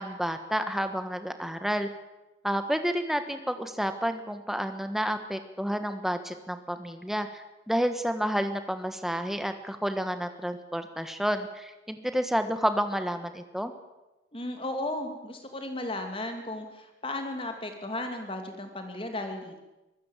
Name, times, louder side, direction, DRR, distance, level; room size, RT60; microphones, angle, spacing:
voice 1, 0.0-1.9 2.4-13.7, equal, ahead, 8 dB, 1.4 m, -30 dB
voice 2, 14.3-19.6, left 1 dB, 30° left, 5 dB, 2.7 m, -35 dB
24.0 x 15.0 x 7.4 m, 1.0 s
head